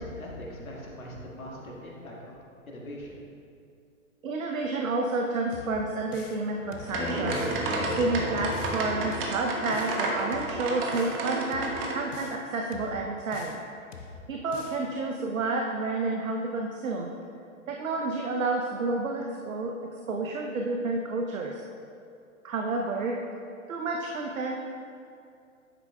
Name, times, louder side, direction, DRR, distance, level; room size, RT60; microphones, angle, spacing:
voice 1, 0.0-2.3 2.7-3.2, equal, 80° left, -3 dB, 1.7 m, -40 dB
voice 2, 4.2-7.5 7.8-13.6 14.3-17.1 17.7-21.6 22.4-23.2 23.7-24.5, right 3 dB, 75° right, 1 dB, 0.7 m, -30 dB
sound 1, 5.5-6.5 6.7-7.6 7.9-8.8 9.1-10.0 10.3-11.2 11.5-12.4 12.7-13.7 13.9-14.8, left 6 dB, 60° left, 0.7 m, -45 dB
sound 2, 6.5-10.2, equal, 5° left, 1.2 m, -34 dB
sound 3, 6.8-12.0, right 3 dB, 40° right, 1.2 m, -32 dB
9.9 x 7.8 x 2.3 m, 2.5 s
figure-of-eight pair, 110°, 41 cm